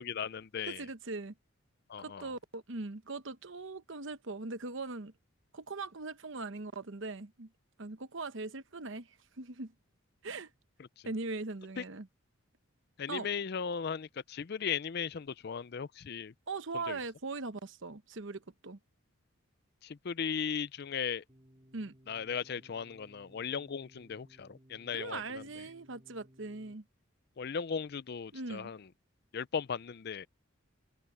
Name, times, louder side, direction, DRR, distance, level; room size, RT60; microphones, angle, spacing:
voice 1, 0.0-0.8 1.9-2.3 11.8-11.9 13.0-16.3 16.9-17.0 19.8-21.2 22.1-25.4 27.4-28.8 29.3-30.3, left 6 dB, 50° left, 0.4 m, -37 dB
voice 2, 0.6-1.3 2.0-5.1 5.5-7.5 7.8-9.1 9.4-9.7 10.2-10.5 11.0-12.1 13.1-13.3 16.5-18.8 21.7-21.9 24.9-26.8 28.3-28.7, right 3 dB, 60° right, 1.0 m, -40 dB
sound 1, 21.3-26.7, equal, 25° right, 3.9 m, -61 dB
head